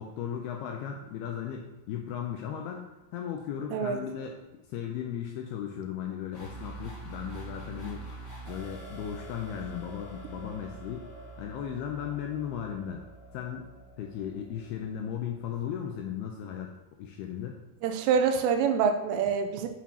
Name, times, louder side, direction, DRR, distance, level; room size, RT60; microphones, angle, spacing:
voice 1, 0.0-4.4 4.7-8.1 8.5-11.1 11.4-13.0 13.3-13.7 14.0-17.6, left 9 dB, 85° left, 2 dB, 2.3 m, -36 dB
voice 2, 3.7-4.0 17.8-19.7, right 6 dB, 80° right, 6 dB, 2.8 m, -26 dB
sound 1, 6.3-15.9, right 2 dB, 35° left, 3.5 m, -45 dB
8.3 x 7.1 x 2.9 m, 1.0 s
omnidirectional pair, 5.1 m